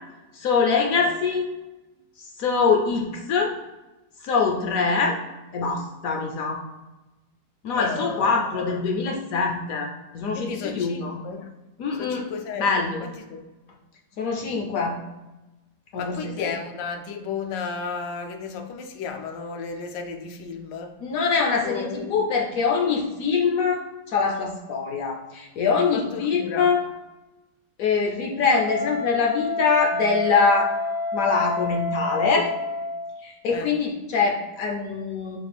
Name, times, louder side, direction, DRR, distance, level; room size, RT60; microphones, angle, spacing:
voice 1, 0.3-1.4 2.2-3.6 4.2-5.2 5.5-6.6 7.6-9.9 10.1-11.2 11.8-12.3 12.6-13.0 14.2-15.0 15.9-16.5 21.0-26.8 27.8-30.7 31.1-32.5 33.2-35.4, left 5 dB, 70° left, 1 dB, 0.8 m, -23 dB
voice 2, 7.7-8.8 10.3-11.5 12.0-13.4 15.9-21.0 21.6-22.2 25.9-26.7 33.5-33.7, left 5 dB, 85° left, 4 dB, 1.3 m, -33 dB
Wind instrument woodwind instrument, 28.5-33.2, left 2 dB, 80° right, 1.4 m, -29 dB
5.0 x 2.4 x 3.3 m, 1.1 s
omnidirectional pair, 1.9 m